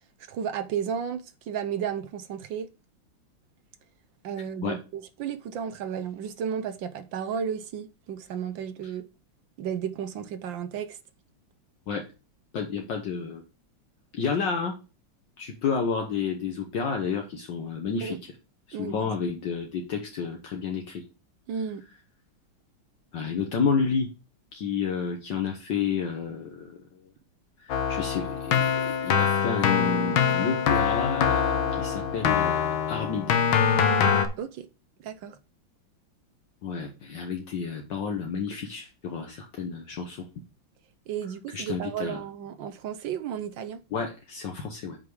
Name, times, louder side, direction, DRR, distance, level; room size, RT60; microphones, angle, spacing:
voice 1, 0.3-2.7 4.2-9.0 9.6-11.0 18.0-18.2 18.7-19.1 21.5-21.8 34.4-34.7 35.0-35.4 41.1-43.8, right 8 dB, 75° right, 1.4 m, -33 dB
voice 2, 12.5-13.4 14.1-14.7 15.4-18.2 18.7-21.0 23.1-24.1 24.5-26.7 27.6-33.4 36.6-40.2 41.5-42.2 43.9-45.0, left 6 dB, 65° left, 1.7 m, -30 dB
Keyboard (musical), 27.7-34.3, left 7 dB, 80° left, 1.9 m, -24 dB
8.2 x 5.3 x 4.7 m
omnidirectional pair, 2.2 m